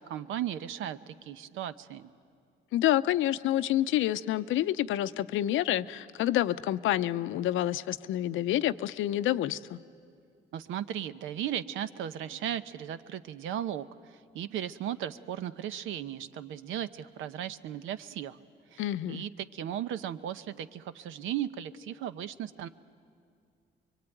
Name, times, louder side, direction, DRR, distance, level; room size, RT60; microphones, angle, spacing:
voice 1, 0.0-2.1 10.5-18.4 18.7-22.7, right 10 dB, 85° right, 13 dB, 0.8 m, -36 dB
voice 2, 2.7-9.8 18.8-19.2, left 13 dB, 85° left, 14 dB, 0.6 m, -28 dB
23.5 x 23.5 x 9.1 m, 2.3 s
cardioid pair, 90°, 20 cm